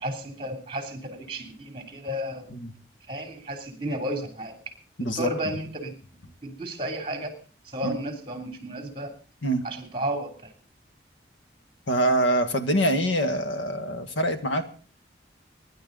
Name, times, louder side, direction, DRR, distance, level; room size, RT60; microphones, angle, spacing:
voice 1, 0.0-2.6 3.1-4.6 5.2-5.9 6.4-9.1 9.6-10.5, equal, 25° right, 5 dB, 2.9 m, -33 dB
voice 2, 5.0-5.3 7.8-8.0 9.4-9.7 11.9-14.6, right 1 dB, 90° left, 8 dB, 1.7 m, -24 dB
25.0 x 10.5 x 3.9 m, 0.37 s
head